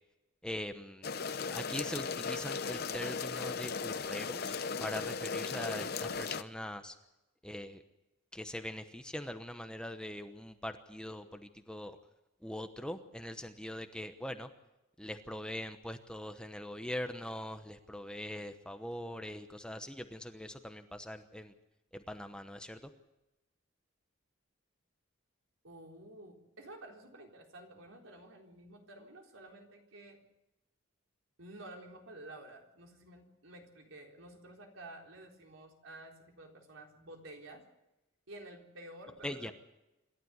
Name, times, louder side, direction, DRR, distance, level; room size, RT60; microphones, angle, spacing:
voice 1, 0.4-1.1 1.5-7.0 7.4-7.8 8.3-12.0 12.4-14.5 15.0-21.5 21.9-22.9 39.2-39.5, left 1 dB, 5° left, 7 dB, 1.0 m, -42 dB
sound 1, 1.0-6.4, left 5 dB, 50° left, 0.7 m, -37 dB
voice 2, 25.6-30.2 31.4-37.6 38.3-39.5, right 1 dB, 80° right, 2 dB, 4.0 m, -51 dB
27.0 x 12.5 x 8.1 m, 0.95 s
head